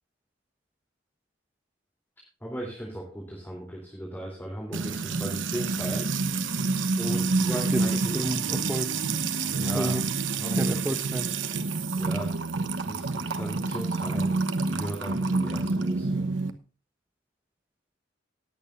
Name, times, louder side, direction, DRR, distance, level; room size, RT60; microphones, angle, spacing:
voice 1, 2.4-6.1 7.0-8.2 9.4-9.9 10.3-10.8 11.9-12.3 12.9-14.4 14.7-16.3, equal, 10° left, -3 dB, 3.4 m, -37 dB
Music / Water tap faucet / Trickle dribble, 4.7-16.5, right 3 dB, 90° right, 1.1 m, -28 dB
voice 2, 8.1-8.9 9.7-10.1 10.6-11.3, right 1 dB, 10° right, 9 dB, 0.8 m, -30 dB
19.0 x 8.6 x 2.6 m, 0.36 s
head